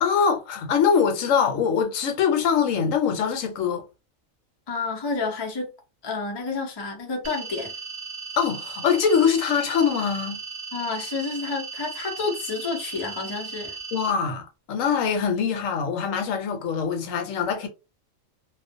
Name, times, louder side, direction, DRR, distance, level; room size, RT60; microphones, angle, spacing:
voice 1, 0.0-3.9 8.4-10.4 13.9-17.7, left 6 dB, 75° left, 1.0 m, -23 dB
voice 2, 4.7-5.7 6.0-7.7 10.7-13.8, left 4 dB, 45° left, 0.3 m, -30 dB
sound 1, 7.2-14.1, right 5 dB, 45° right, 0.9 m, -37 dB
2.4 x 2.1 x 2.5 m
omnidirectional pair, 1.4 m